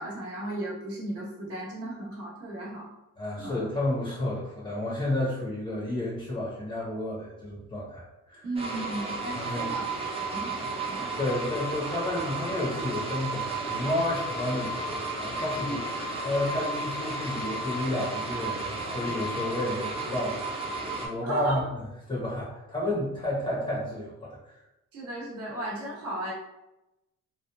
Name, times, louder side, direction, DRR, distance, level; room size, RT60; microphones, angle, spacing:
voice 1, 0.0-2.9 3.4-3.6 8.4-11.1 15.7-15.8 21.3-21.7 24.9-26.3, right 1 dB, 50° right, -6 dB, 1.0 m, -35 dB
voice 2, 3.2-8.5 9.3-9.7 10.9-15.8 16.2-20.5 21.0-21.8 22.1-24.4, left 1 dB, 20° left, -6 dB, 0.8 m, -31 dB
sound 1, 8.6-21.1, right 2 dB, 20° right, 0.6 m, -33 dB
3.0 x 2.2 x 2.2 m, 0.96 s
cardioid pair, 90°, 30 cm